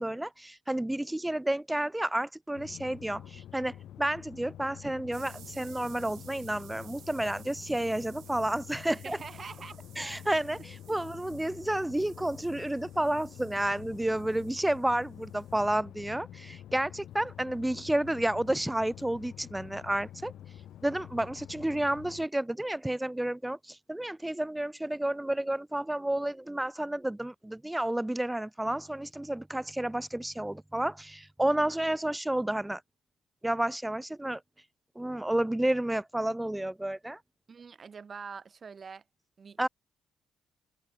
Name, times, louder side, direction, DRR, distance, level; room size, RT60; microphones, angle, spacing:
voice 1, 0.0-9.2 10.0-20.3 20.8-32.8 33.4-34.4 35.0-37.2 39.6-39.7, right 1 dB, 10° right, 0.7 m, -31 dB
sound 1, 2.6-22.3, left 11 dB, 75° left, 3.3 m, -48 dB
sound 2, 5.1-15.7, right 11 dB, 70° right, 2.8 m, -56 dB
voice 2, 8.8-9.8 10.9-11.0 37.5-39.0 39.4-39.7, right 5 dB, 40° right, 3.4 m, -45 dB
cardioid pair, 90°, 0 cm